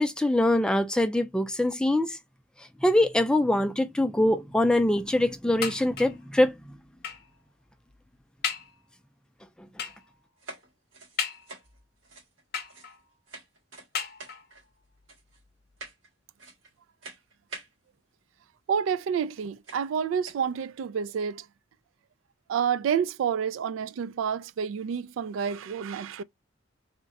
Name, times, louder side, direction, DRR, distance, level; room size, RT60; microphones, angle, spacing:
voice 1, 0.0-2.2 2.8-6.7, left 1 dB, 5° left, 0.4 m, -23 dB
sound 1, 5.6-6.3 7.0-7.4 7.9-8.0 8.4-8.8 9.8-10.1 11.2-11.8 12.5-13.1 13.9-14.6 15.4-15.5 15.9-16.0, left 6 dB, 55° left, 0.7 m, -35 dB
sound 2, 10.4-13.0 13.3-13.9 14.2-14.7 15.1-15.4 15.8-16.1 16.4-16.8 17.0-17.7 18.9-19.0 19.6-19.9 20.2-20.5, right 3 dB, 75° right, 1.9 m, -46 dB
voice 2, 18.7-21.5 22.5-26.2, right 7 dB, 90° right, 0.3 m, -29 dB
3.7 x 2.1 x 4.0 m
head